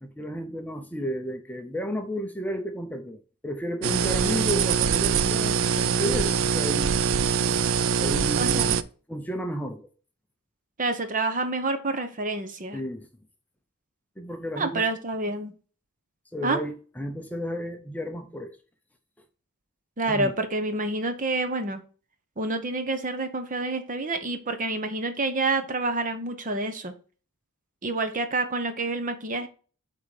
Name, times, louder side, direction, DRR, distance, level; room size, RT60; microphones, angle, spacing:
voice 1, 0.0-7.0 8.0-8.7 9.1-9.9 12.7-13.1 14.2-14.9 16.3-18.6 20.1-20.3, equal, 5° left, 0.7 m, -32 dB
sound 1, 3.8-8.8, right 7 dB, 60° right, 0.4 m, -23 dB
voice 2, 8.4-8.8 10.8-12.8 14.6-15.5 16.4-16.6 20.0-21.8 22.4-26.9 27.8-29.5, right 2 dB, 35° right, 0.9 m, -28 dB
7.7 x 3.8 x 4.9 m
head